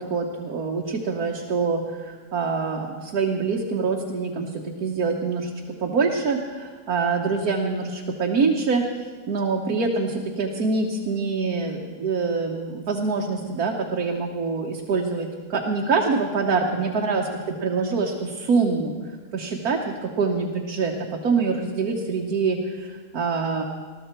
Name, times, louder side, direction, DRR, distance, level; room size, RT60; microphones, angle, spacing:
voice 1, 0.0-5.5 5.8-8.8 9.3-17.3 17.6-18.9 19.3-20.9 21.2-23.6, right 4 dB, 85° right, 0 dB, 1.6 m, -25 dB
20.0 x 13.0 x 4.5 m, 1.5 s
omnidirectional pair, 1.5 m